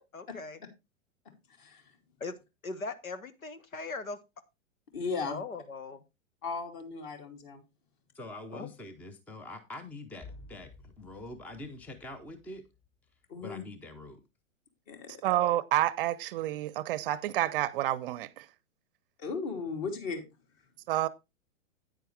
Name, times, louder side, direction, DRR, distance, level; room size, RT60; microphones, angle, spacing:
voice 1, 0.1-0.6 2.2-2.4 2.6-4.2 5.3-6.0 8.5-8.7, left 3 dB, 85° left, 1.3 m, -39 dB
voice 2, 4.9-5.4 6.4-7.6 13.3-13.6 14.9-15.2 19.2-20.2, left 4 dB, 40° left, 2.9 m, -36 dB
voice 3, 8.1-12.7 13.4-14.2, left 2 dB, 5° left, 0.5 m, -44 dB
sound 1, 10.2-13.1, left 3 dB, 25° left, 2.9 m, -53 dB
voice 4, 15.2-18.5 20.9-21.1, right 14 dB, 45° right, 0.6 m, -29 dB
9.4 x 9.0 x 3.3 m
hypercardioid pair, 110°, 40 cm